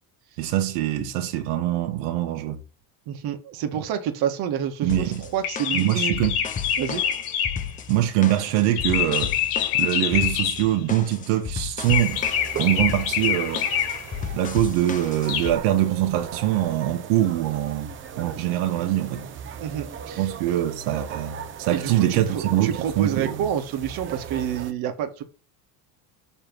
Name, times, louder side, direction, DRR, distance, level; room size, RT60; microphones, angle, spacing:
voice 1, 0.4-2.6 4.8-5.2 5.7-6.4 7.9-9.3 9.7-12.2 12.6-13.6 14.3-17.9 18.2-19.3 20.2-23.5, right 13 dB, 80° right, 1.3 m, -23 dB
voice 2, 3.1-6.2 6.8-7.0 19.6-20.3 21.7-25.2, right 9 dB, 55° right, 1.4 m, -28 dB
sound 1, 4.9-15.6, left 7 dB, 20° left, 0.5 m, -34 dB
sound 2, 5.4-7.8 8.8-10.7 11.9-14.2 15.3-15.5, left 9 dB, 80° left, 1.6 m, -26 dB
sound 3, 11.8-24.7, right 8 dB, 25° right, 0.7 m, -38 dB
7.0 x 3.4 x 6.0 m
cardioid pair, 155°, 44 cm